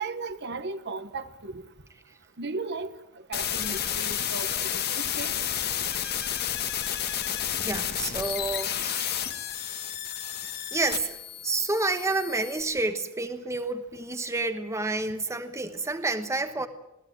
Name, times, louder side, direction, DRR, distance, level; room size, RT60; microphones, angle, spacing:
voice 1, 0.0-1.6 2.4-2.9 3.3-5.3, right 3 dB, 50° right, 10 dB, 1.2 m, -35 dB
sound 1, 3.3-12.6, left 10 dB, 45° left, 1.8 m, -31 dB
voice 2, 7.6-9.3 10.7-11.1 11.4-16.7, right 2 dB, 15° right, 8 dB, 1.2 m, -29 dB
21.5 x 16.5 x 9.1 m, 0.90 s
head